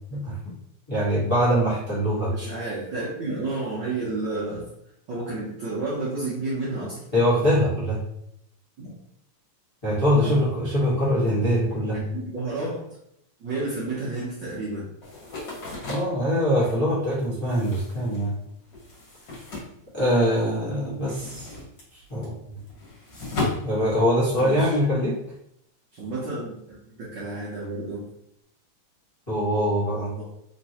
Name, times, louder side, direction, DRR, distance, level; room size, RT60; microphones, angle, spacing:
voice 1, 0.9-2.3 7.1-8.0 9.8-12.0 15.9-18.3 19.9-21.5 22.1-22.3 23.6-25.1 29.3-30.1, equal, 25° left, -10 dB, 0.5 m, -23 dB
voice 2, 2.2-4.7 5.1-7.0 8.8-8.9 10.2-10.6 10.9-11.5 11.9-12.8 13.4-14.9 24.4-24.7 25.9-28.1 30.1-30.2, right 2 dB, 80° right, -7 dB, 1.0 m, -31 dB
sound 1, 15.0-20.4 20.7-24.6, left 2 dB, 45° left, 1.9 m, -36 dB
4.3 x 3.1 x 2.9 m, 0.76 s
omnidirectional pair, 3.3 m